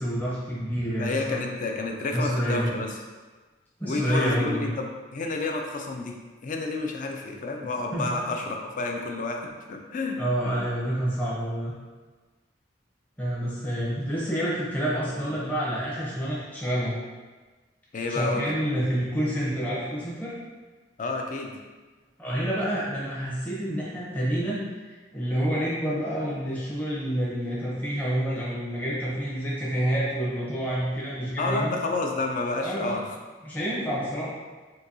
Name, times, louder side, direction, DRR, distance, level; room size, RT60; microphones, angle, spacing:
voice 1, 0.0-1.5 2.1-2.7 3.8-4.7 7.9-8.1 10.2-11.7 13.2-16.9 18.1-20.3 22.2-24.6 24.9-31.8 32.6-33.0 33.4-34.3, equal, 10° left, -8 dB, 0.7 m, -28 dB
voice 2, 1.0-3.0 3.8-6.2 6.4-9.4 9.7-10.2 17.9-18.5 21.0-21.5 31.4-33.2 33.6-33.7, left 3 dB, 45° left, 2 dB, 0.4 m, -30 dB
3.9 x 2.6 x 2.7 m, 1.3 s
head